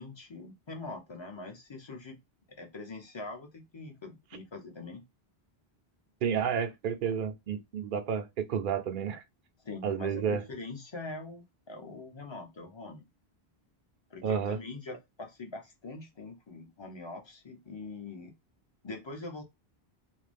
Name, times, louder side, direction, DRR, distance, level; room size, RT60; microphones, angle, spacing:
voice 1, 0.0-2.2 2.6-5.0 9.6-13.0 14.1-18.3 18.8-19.4, left 3 dB, 30° left, 0.7 m, -43 dB
voice 2, 6.2-9.2 9.8-10.4 14.2-14.6, right 7 dB, 60° right, 0.7 m, -31 dB
2.6 x 2.2 x 3.3 m
omnidirectional pair, 1.1 m